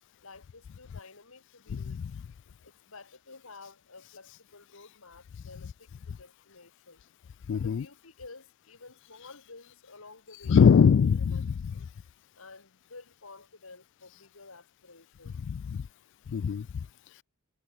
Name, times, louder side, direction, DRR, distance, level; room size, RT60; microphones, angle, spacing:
voice 1, 0.2-2.0 2.6-7.0 7.5-10.6 11.3-11.9 12.3-15.4, left 3 dB, 80° left, 2.9 m, -51 dB
voice 2, 1.7-2.1 7.5-7.9 10.5-11.5 15.4-15.9 16.3-16.7, left 6 dB, 60° left, 0.3 m, -22 dB
head